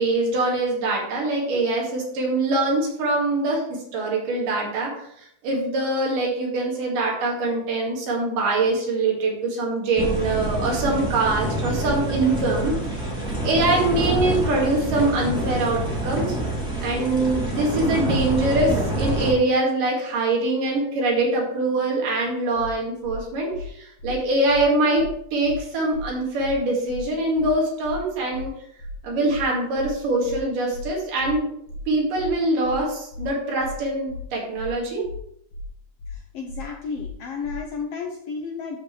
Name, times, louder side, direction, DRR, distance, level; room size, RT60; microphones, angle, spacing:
voice 1, 0.0-13.0 13.4-16.4 16.8-28.5 29.0-31.5 31.9-35.1, right 2 dB, 85° right, -2 dB, 3.7 m, -23 dB
sound 1, 10.0-19.3, right 1 dB, ahead, 2.0 m, -26 dB
sound 2, 22.5-22.7 23.0-23.2 23.5-23.7 24.0-24.1 24.5-24.6 24.9-25.1 25.4-25.6 25.9-26.1 26.4-26.5 26.9-27.0 27.3-27.5 27.8-28.0 28.3-28.5 28.8-28.9 29.3-29.4 29.7-29.9 30.2-30.4 30.7-30.9 31.2-31.3 31.7-31.8 32.1-32.3 32.6-32.8 33.1-33.3 33.6-33.7 34.1-34.2 34.5-34.7 35.0-35.2 35.5-35.7 36.0-36.1 36.5-36.6 36.9-37.1 37.4-37.6, left 2 dB, 55° left, 1.6 m, -36 dB
voice 2, 36.1-38.8, left 5 dB, 70° left, 1 dB, 1.5 m, -32 dB
12.5 x 5.0 x 3.3 m, 0.72 s
omnidirectional pair, 3.7 m